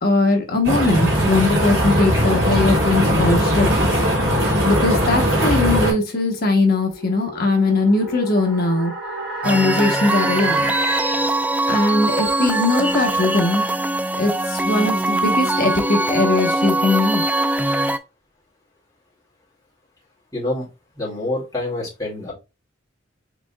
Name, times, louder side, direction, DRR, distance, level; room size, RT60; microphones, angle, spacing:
voice 1, 0.0-3.9 4.7-8.9 9.4-10.7 11.7-13.6 14.1-17.2, left 2 dB, 55° left, 3 dB, 1.0 m, -20 dB
sound 1, 0.6-5.9, equal, 70° right, 2.4 m, -19 dB
sound 2, 6.0-11.5, right 2 dB, 55° right, 1.7 m, -30 dB
sound 3, 9.4-18.0, right 2 dB, 10° right, 0.3 m, -22 dB
voice 2, 20.3-20.7 21.0-22.3, left 2 dB, 20° left, -5 dB, 2.2 m, -26 dB
5.0 x 3.6 x 2.3 m, 0.27 s
head